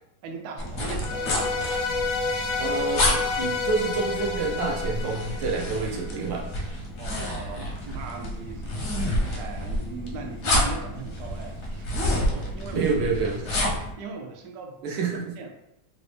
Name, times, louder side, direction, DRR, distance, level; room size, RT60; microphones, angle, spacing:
voice 1, 0.2-1.6 7.0-12.9 13.7-14.8 15.4-15.5, right 4 dB, 70° right, 2 dB, 1.0 m, -39 dB
sound 1, 0.6-13.9, left 1 dB, 65° left, 0.7 m, -29 dB
sound 2, 1.0-6.2, left 3 dB, 80° left, 1.3 m, -29 dB
voice 2, 2.6-6.4 12.7-13.4 14.8-15.3, right 4 dB, 90° right, -1 dB, 1.5 m, -28 dB
3.9 x 2.0 x 3.2 m, 0.80 s
omnidirectional pair, 2.0 m